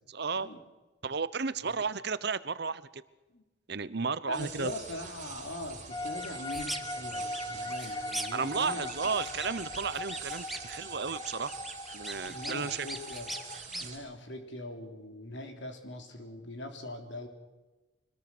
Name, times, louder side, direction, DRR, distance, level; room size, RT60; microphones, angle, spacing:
voice 1, 0.1-0.5 1.0-3.0 3.7-4.7 8.3-11.6 11.9-12.9, right 5 dB, 55° right, 16 dB, 0.8 m, -33 dB
voice 2, 4.3-9.2 12.2-13.3 13.7-17.3, left 1 dB, 65° left, 5 dB, 3.5 m, -42 dB
sound 1, 4.3-14.0, right 6 dB, 35° right, 6.9 m, -45 dB
sound 2, 5.9-13.6, left 2 dB, 20° left, 0.7 m, -40 dB
sound 3, 6.2-6.8 7.1-8.6 8.9-10.8 11.1-13.9, right 1 dB, ahead, 1.2 m, -41 dB
24.5 x 21.0 x 6.1 m, 1.1 s
head